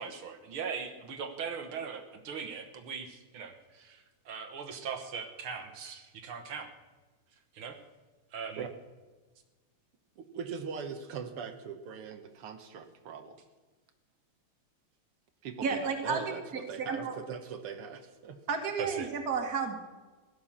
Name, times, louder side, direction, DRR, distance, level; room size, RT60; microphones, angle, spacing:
voice 1, 0.0-6.7 7.5-7.8 8.3-8.7 18.8-19.1, right 6 dB, 70° right, 7 dB, 2.1 m, -40 dB
voice 2, 10.2-13.4 15.4-18.4, right 6 dB, 90° right, 7 dB, 2.1 m, -41 dB
voice 3, 15.6-17.2 18.5-19.8, right 5 dB, 45° right, 5 dB, 2.1 m, -32 dB
16.5 x 11.5 x 7.2 m, 1.3 s
omnidirectional pair, 2.4 m